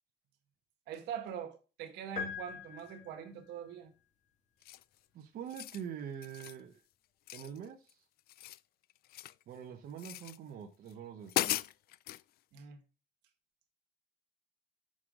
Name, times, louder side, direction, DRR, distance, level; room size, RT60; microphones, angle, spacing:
voice 1, 0.9-3.9 12.5-12.8, right 8 dB, 85° right, 1.7 m, -43 dB
sound 1, 2.2-3.5, left 7 dB, 45° left, 1.7 m, -42 dB
sound 2, 4.6-5.0 5.4-5.8 6.2-6.6 7.3-7.9 8.2-9.4 10.0-10.4 10.9-11.0 11.3-12.2, left 15 dB, 65° left, 0.4 m, -38 dB
voice 2, 5.1-6.8 7.3-8.1 9.5-11.6, right 8 dB, 60° right, 1.1 m, -45 dB
6.4 x 5.8 x 3.8 m
cardioid pair, 110°, 17 cm